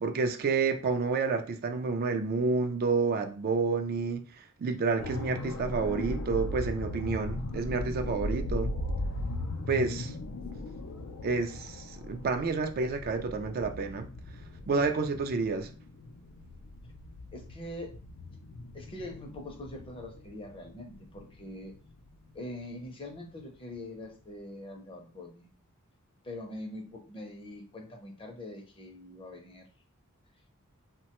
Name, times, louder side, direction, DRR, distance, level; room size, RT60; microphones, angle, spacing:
voice 1, 0.0-8.7 9.7-10.1 11.2-14.1 14.7-15.7, right 4 dB, 45° right, 0.3 m, -29 dB
sound 1, 5.0-22.9 23.2-23.4, left 1 dB, 70° left, 0.4 m, -38 dB
voice 2, 17.3-17.9 18.7-21.7 22.3-25.5 26.2-29.7, left 1 dB, 25° left, 0.6 m, -43 dB
3.0 x 2.1 x 2.9 m
head